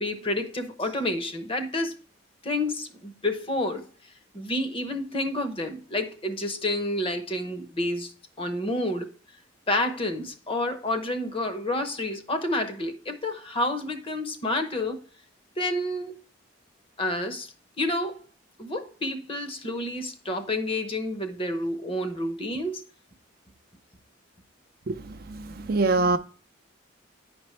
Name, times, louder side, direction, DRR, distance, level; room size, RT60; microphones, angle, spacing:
voice 1, 0.0-1.9 2.4-3.9 4.3-8.1 8.4-9.1 9.7-15.0 15.6-16.2 17.0-18.2 18.6-22.8, left 1 dB, 30° left, 0.8 m, -29 dB
voice 2, 24.9-26.2, right 3 dB, 50° right, 0.5 m, -25 dB
9.7 x 5.2 x 3.2 m
head